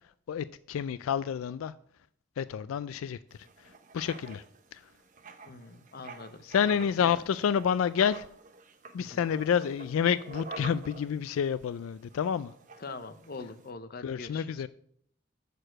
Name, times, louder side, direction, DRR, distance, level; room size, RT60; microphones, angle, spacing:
voice 1, 0.3-1.7 2.4-3.2 3.6-4.4 4.7-4.8 6.4-8.3 8.9-12.5 14.0-14.7, left 8 dB, 85° left, 0.3 m, -29 dB
Writing, 3.3-13.7, right 3 dB, 40° right, 0.8 m, -49 dB
voice 2, 5.4-7.2 9.0-9.2 12.8-14.5, left 3 dB, 50° left, 0.7 m, -44 dB
6.7 x 6.5 x 7.5 m
head